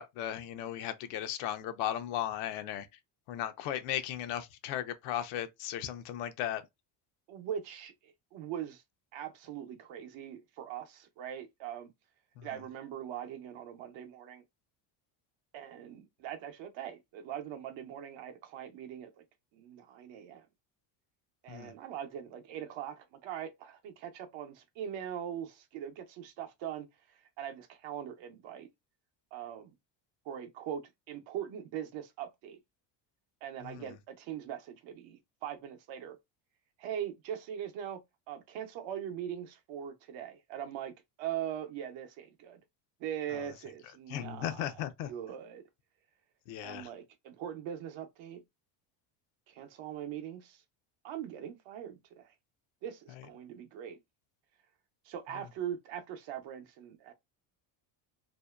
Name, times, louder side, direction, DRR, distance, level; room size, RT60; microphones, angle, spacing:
voice 1, 0.0-2.9 3.3-6.6 12.4-12.6 21.5-21.7 33.6-33.9 43.3-43.5 44.1-45.1 46.5-46.9 53.1-53.3 55.3-55.5, left 11 dB, 80° left, 0.7 m, -37 dB
voice 2, 7.3-8.8 9.1-11.9 12.4-14.4 15.5-19.2 19.5-20.5 21.4-28.7 29.3-29.7 30.2-32.6 33.4-36.2 36.8-42.6 43.0-44.7 45.1-45.6 46.6-48.4 49.5-50.6 51.0-52.3 52.8-54.0 55.0-57.1, right 10 dB, 65° right, 0.8 m, -41 dB
2.7 x 2.1 x 2.3 m
cardioid pair, 105°, 49 cm